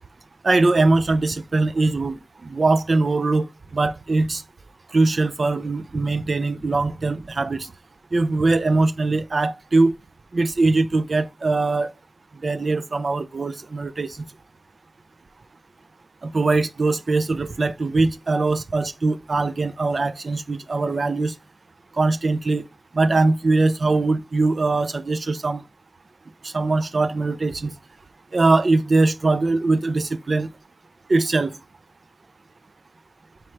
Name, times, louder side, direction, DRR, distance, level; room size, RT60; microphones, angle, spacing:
voice 1, 0.4-2.2 2.4-4.4 4.9-7.7 8.1-9.9 10.3-11.9 12.4-14.2 16.2-21.3 22.0-22.7 22.9-25.6 26.4-27.7 28.3-30.5 31.1-31.5, right 3 dB, 65° right, 0.3 m, -21 dB
3.2 x 2.8 x 4.5 m
wide cardioid pair, 85°, 0 cm